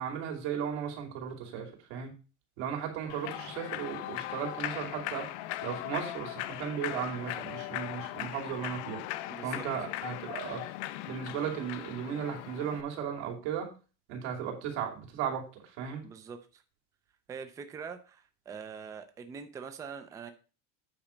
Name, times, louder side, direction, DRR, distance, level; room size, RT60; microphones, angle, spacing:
voice 1, 0.0-2.1 2.6-9.0 9.4-10.6 11.1-13.7 14.1-16.0, right 8 dB, 80° right, 2 dB, 2.8 m, -36 dB
Human voice / Clapping / Cheering, 3.1-12.8, left 15 dB, 75° left, 0.6 m, -39 dB
voice 2, 9.3-9.6 16.0-16.6 17.3-20.3, right 6 dB, 10° right, 8 dB, 0.4 m, -43 dB
8.9 x 4.3 x 5.0 m, 0.35 s
cardioid pair, 175°, 34 cm